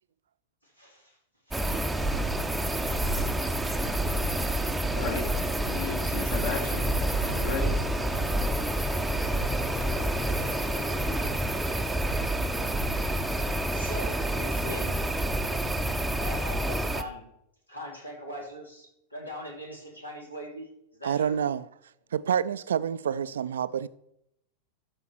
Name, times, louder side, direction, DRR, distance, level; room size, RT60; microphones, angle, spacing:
voice 1, 0.6-1.2 1.5-1.8 13.7-15.0 16.2-17.3 17.7-21.4, equal, 85° left, 2.9 m, -41 dB
sound 1, 1.5-17.0, right 1 dB, 5° right, 0.7 m, -28 dB
Engine, 2.9-11.4, left 4 dB, 25° left, 1.3 m, -44 dB
voice 2, 4.9-5.3 5.6-6.9 7.2-7.8, left 4 dB, 55° left, 2.1 m, -33 dB
voice 3, 21.0-21.6 22.1-23.9, right 8 dB, 65° right, 0.4 m, -28 dB
13.0 x 5.3 x 4.6 m
figure-of-eight pair, 90°, 0 cm